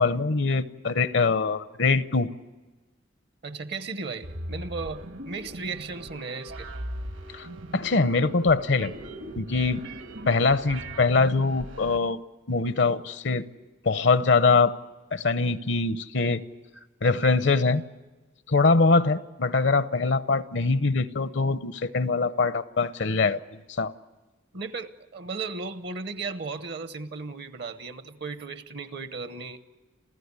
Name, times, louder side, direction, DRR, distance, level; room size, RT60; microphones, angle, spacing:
voice 1, 0.0-2.3 7.3-7.5 7.7-8.9 9.4-9.8 10.3-12.2 12.5-13.4 13.8-14.7 15.1-16.4 17.0-17.8 18.5-23.4 23.8-23.9, left 4 dB, 60° left, 14 dB, 0.7 m, -23 dB
voice 2, 3.4-6.7 24.5-29.6, right 4 dB, 55° right, 11 dB, 0.9 m, -35 dB
sound 1, 4.2-12.0, right 1 dB, 70° right, 1.7 m, -39 dB
28.0 x 15.5 x 9.6 m, 1.2 s
head